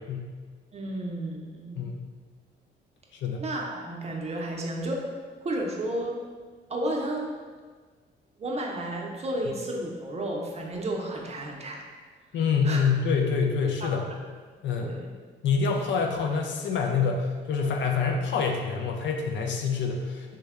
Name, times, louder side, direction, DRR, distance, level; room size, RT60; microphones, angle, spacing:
voice 1, 0.7-1.8 3.4-5.1 5.4-6.2 6.7-7.4 8.4-11.9 12.6-12.8 13.8-13.9 14.8-15.1, right 1 dB, 30° right, 0 dB, 0.5 m, -32 dB
voice 2, 12.3-14.0 14.6-15.0 15.4-20.4, left 5 dB, 70° left, 2 dB, 0.5 m, -26 dB
3.2 x 2.1 x 3.5 m, 1.5 s
cardioid pair, 90°, 20 cm